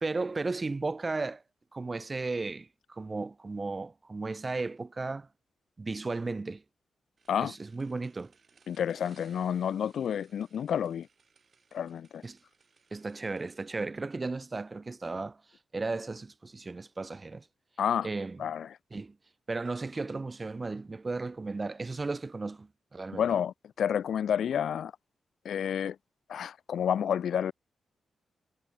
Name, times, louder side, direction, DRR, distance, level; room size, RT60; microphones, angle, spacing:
voice 1, 0.0-1.4 1.7-5.3 5.8-6.6 7.4-8.3 12.2-12.4 12.9-15.4 15.7-17.5 18.0-18.4 18.9-19.2 19.5-23.2, right 3 dB, 25° right, 0.3 m, -35 dB
sound 1, 7.2-13.6, right 5 dB, 40° right, 2.3 m, -65 dB
voice 2, 8.7-11.1 11.7-12.2 17.8-18.1 18.4-18.7 23.1-24.9 25.4-26.0 26.3-27.5, left 8 dB, 75° left, 0.4 m, -30 dB
wide cardioid pair, 135°, 0 cm